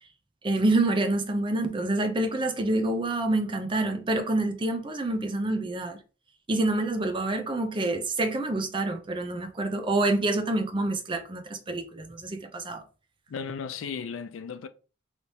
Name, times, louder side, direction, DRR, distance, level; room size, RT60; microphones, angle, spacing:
voice 1, 0.4-6.0 6.5-12.8, right 2 dB, 25° right, 0.5 m, -27 dB
voice 2, 13.3-14.7, left 6 dB, 85° left, 0.4 m, -35 dB
3.3 x 2.9 x 2.7 m
head